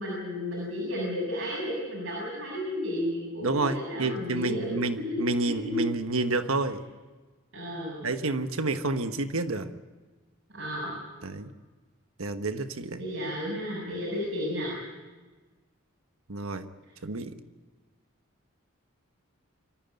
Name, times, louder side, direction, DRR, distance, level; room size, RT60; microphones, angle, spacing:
voice 1, 0.0-5.8 7.5-8.1 10.5-11.0 13.0-14.8, left 1 dB, 65° right, -5 dB, 7.5 m, -33 dB
voice 2, 3.4-6.8 8.0-9.7 11.2-11.5 12.2-13.0 16.3-16.7 17.0-17.3, right 2 dB, 85° right, 9 dB, 1.2 m, -29 dB
24.5 x 14.5 x 9.5 m, 1.3 s
head